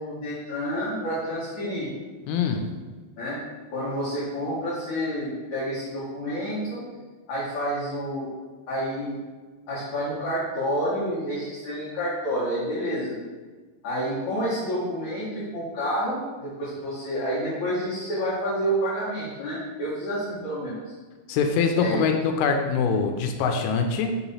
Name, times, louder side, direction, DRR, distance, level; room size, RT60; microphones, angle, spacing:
voice 1, 0.0-1.9 3.2-3.4 3.7-6.8 7.3-8.3 8.7-9.2 9.7-13.2 13.8-20.9 21.8-22.1, equal, 55° left, -10 dB, 2.1 m, -29 dB
voice 2, 2.3-2.6 21.3-24.1, left 5 dB, 85° left, 4 dB, 3.1 m, -23 dB
7.1 x 3.0 x 5.5 m, 1.4 s
omnidirectional pair, 5.6 m